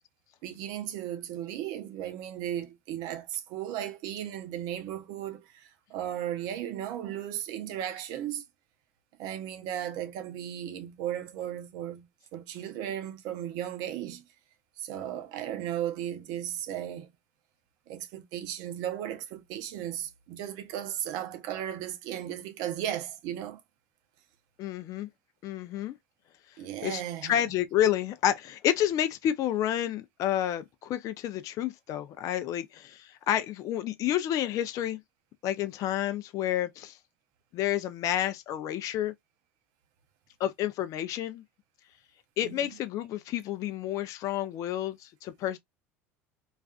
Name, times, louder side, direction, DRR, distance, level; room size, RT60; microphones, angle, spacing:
voice 1, 0.4-8.4 9.2-14.2 14.8-17.1 17.9-23.6 26.6-27.4 42.4-42.7, right 11 dB, 60° right, 0.6 m, -36 dB
voice 2, 24.6-25.1 25.4-25.9 26.8-35.0 35.4-37.0 37.5-39.1 40.4-41.4 42.4-45.6, left 11 dB, 50° left, 0.4 m, -30 dB
2.4 x 2.4 x 2.3 m
hypercardioid pair, 80°, 7 cm